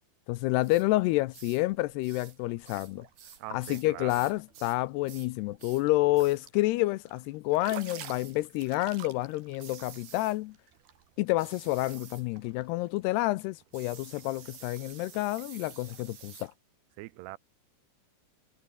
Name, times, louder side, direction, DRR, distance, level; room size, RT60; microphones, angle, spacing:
voice 1, 0.3-3.1 3.5-10.5 11.2-16.5, left 19 dB, 80° left, 2.5 m, -29 dB
sound 1, 0.6-0.9 1.3-1.6 2.0-2.4 2.6-4.8 5.1-5.3 5.6-5.9 6.1-6.4 7.7-8.4 9.6-10.4 11.4-12.3 13.7-16.5, right 8 dB, 50° right, 3.7 m, -50 dB
sound 2, 0.6-16.5, right 9 dB, 65° right, 4.2 m, -53 dB
voice 2, 3.4-4.2 17.0-17.4, right 19 dB, 85° right, 2.7 m, -42 dB
omnidirectional pair, 5.0 m